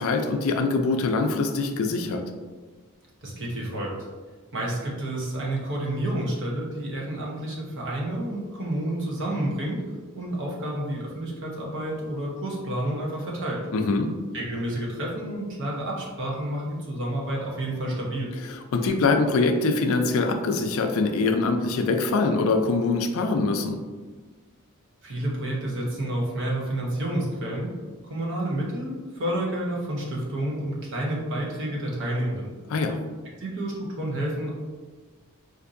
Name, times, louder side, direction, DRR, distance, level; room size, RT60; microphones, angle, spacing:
voice 1, 0.0-2.2 13.7-14.2 18.4-23.8 32.7-33.0, left 3 dB, 65° left, 5 dB, 0.4 m, -23 dB
voice 2, 3.2-3.9 4.5-9.8 10.1-13.6 14.3-18.3 25.0-27.7 28.0-32.5 33.4-34.5, right 1 dB, 60° right, -3 dB, 0.9 m, -29 dB
4.4 x 2.5 x 2.5 m, 1.4 s
head